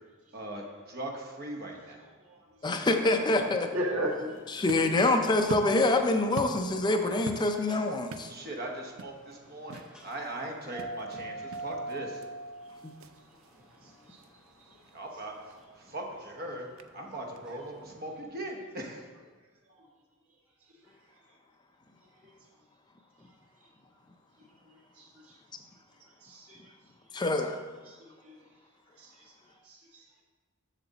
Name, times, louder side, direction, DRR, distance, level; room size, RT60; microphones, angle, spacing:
voice 1, 0.3-2.1 8.3-12.2 14.9-15.3 15.8-19.1, right 1 dB, 45° right, 1 dB, 1.0 m, -40 dB
voice 2, 2.6-3.7 4.5-8.3 12.8-12.9 27.1-27.6, left 2 dB, 20° left, 5 dB, 0.5 m, -26 dB
sound 1, 3.3-18.2, right 2 dB, 5° right, 0.8 m, -47 dB
voice 3, 3.7-4.3 25.0-25.4 26.2-26.6 27.9-28.0 28.2-28.3 29.0-29.1 29.6-29.8, equal, 85° right, -3 dB, 1.9 m, -34 dB
sound 2, 4.3-17.9, right 4 dB, 70° right, 0.4 m, -47 dB
7.2 x 6.9 x 4.0 m, 1.4 s
head